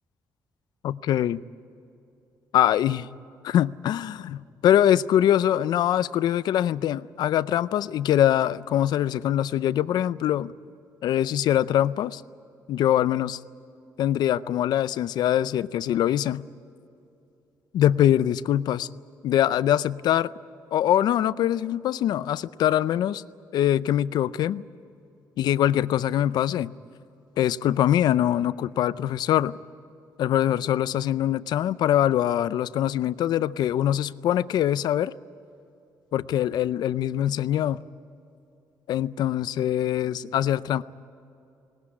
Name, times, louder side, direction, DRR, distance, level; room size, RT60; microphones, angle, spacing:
voice 1, 0.8-1.4 2.5-3.1 3.4-10.5 11.0-12.2 12.7-13.4 14.0-16.4 17.7-18.9 19.2-20.3 20.7-23.2 23.5-24.6 25.4-26.7 27.4-29.6 30.2-35.1 36.1-37.8 38.9-40.8, left 11 dB, 70° left, 0.5 m, -23 dB
20.0 x 19.5 x 9.8 m
cardioid pair, 170°, 7 cm